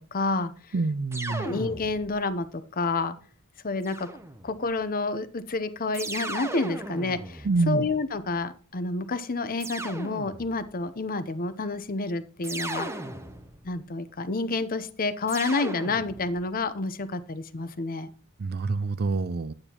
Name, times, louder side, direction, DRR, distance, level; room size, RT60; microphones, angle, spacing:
voice 1, 0.1-0.5 1.4-3.2 3.6-4.1 4.4-12.9 13.6-18.1, left 3 dB, 40° left, 0.7 m, -29 dB
voice 2, 0.7-1.5 7.4-7.8 18.4-19.5, right 3 dB, 45° right, 0.5 m, -26 dB
sound 1, 1.1-2.3 3.8-4.7 5.9-8.3 9.6-10.7 12.4-13.8 15.3-16.5, right 2 dB, 10° right, 0.8 m, -37 dB
10.0 x 8.9 x 2.9 m
head